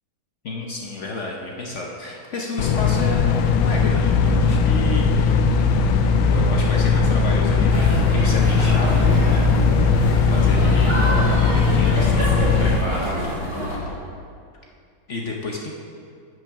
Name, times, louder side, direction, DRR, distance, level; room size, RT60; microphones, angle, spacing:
voice 1, 0.4-5.4 6.2-9.8 10.2-13.7 15.1-15.7, left 2 dB, 55° left, -1 dB, 0.8 m, -31 dB
sound 1, 2.6-12.8, left 4 dB, 90° left, 1.4 m, -18 dB
sound 2, 7.0-14.0, left 2 dB, 70° left, 1.6 m, -32 dB
sound 3, 7.7-13.8, right 1 dB, 35° right, 2.6 m, -29 dB
8.5 x 6.3 x 5.8 m, 2.3 s
omnidirectional pair, 2.2 m